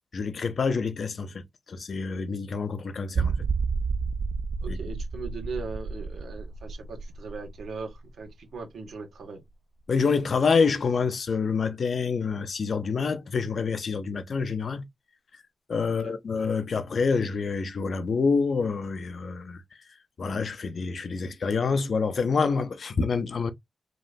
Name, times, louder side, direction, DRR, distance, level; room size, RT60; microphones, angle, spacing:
voice 1, 0.1-3.4 4.7-4.8 9.9-14.8 15.7-19.6 20.2-23.5, left 5 dB, 50° left, 0.5 m, -27 dB
sound 1, 3.2-8.6 8.9-9.0 9.5-9.6, right 5 dB, 50° right, 0.3 m, -31 dB
voice 2, 4.6-9.4 15.9-16.2, right 4 dB, 85° right, 1.7 m, -39 dB
5.2 x 3.0 x 2.6 m
wide cardioid pair, 170°, 0 cm